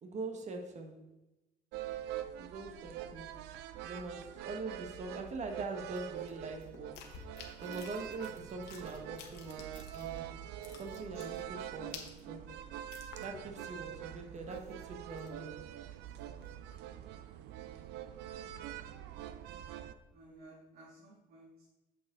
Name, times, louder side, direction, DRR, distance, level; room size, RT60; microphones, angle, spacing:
voice 1, 0.0-1.0 2.4-3.3 3.8-7.0 7.6-10.3 10.7-12.5 13.2-15.7, right 3 dB, 45° right, 4 dB, 1.4 m, -43 dB
sound 1, 1.7-19.9, right 11 dB, 90° right, 0.5 m, -45 dB
sound 2, 6.0-10.3 10.6-13.6 13.9-14.0 14.3-15.5 15.9-16.8, left 6 dB, 90° left, 1.4 m, -52 dB
voice 2, 11.1-11.5 20.1-21.7, right 2 dB, 70° right, -4 dB, 2.1 m, -57 dB
8.5 x 6.9 x 3.8 m, 0.98 s
cardioid pair, 110°, 17 cm